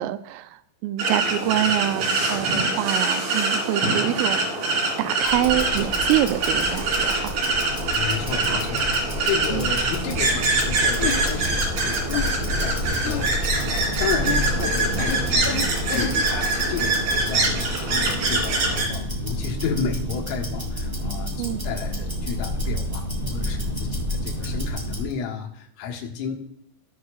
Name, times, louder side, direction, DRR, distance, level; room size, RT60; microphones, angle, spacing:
voice 1, 0.0-4.6 5.0-7.4 9.5-9.7 21.4-21.6, right 14 dB, 85° right, 12 dB, 3.1 m, -26 dB
sound 1, 1.0-18.9, right 3 dB, 55° right, 3.0 m, -24 dB
Tick-tock, 5.2-25.1, equal, 15° right, 1.6 m, -29 dB
voice 2, 7.9-26.4, left 6 dB, 90° left, 0 dB, 4.1 m, -32 dB
sound 2, 10.3-10.5 11.0-11.3 12.1-12.4 13.0-13.3 14.2-14.5 15.0-16.5, left 6 dB, 65° left, 3.5 m, -29 dB
18.0 x 6.5 x 2.4 m, 0.71 s
omnidirectional pair, 5.8 m